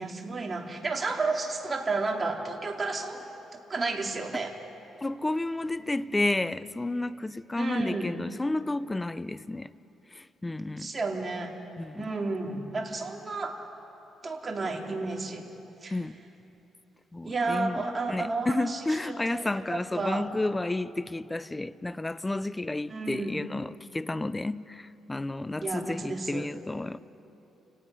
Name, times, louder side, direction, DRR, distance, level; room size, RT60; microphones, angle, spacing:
voice 1, 0.0-3.2 3.7-4.5 7.6-8.1 10.8-11.5 12.0-13.6 14.2-15.4 15.8-15.9 17.2-20.2 22.9-23.4 25.6-26.5, right 3 dB, 30° right, 2.6 m, -32 dB
voice 2, 5.0-9.7 10.1-10.9 11.8-12.1 15.9-16.1 17.1-27.0, left 2 dB, 15° left, 0.5 m, -31 dB
30.0 x 17.5 x 5.4 m
cardioid pair, 90°, 0 cm